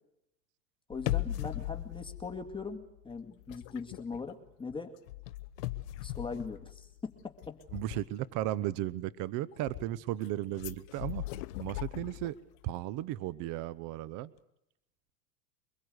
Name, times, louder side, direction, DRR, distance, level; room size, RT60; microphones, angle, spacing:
sound 1, 0.9-3.2 3.5-3.8 5.1-7.3 10.5-12.4 12.7-12.8, left 15 dB, 70° left, 1.4 m, -38 dB
voice 1, 0.9-4.9 6.0-7.6, left 4 dB, 10° left, 5 dB, 2.3 m, -41 dB
sound 2, 3.1-5.0 5.4-6.6 7.4-8.5 9.1-10.3 10.5-12.7, left 21 dB, 45° left, 0.8 m, -47 dB
voice 2, 7.7-12.4 12.6-14.3, right 14 dB, 40° right, 19 dB, 0.9 m, -35 dB
24.0 x 21.5 x 8.1 m, 0.84 s
hypercardioid pair, 110°, 49 cm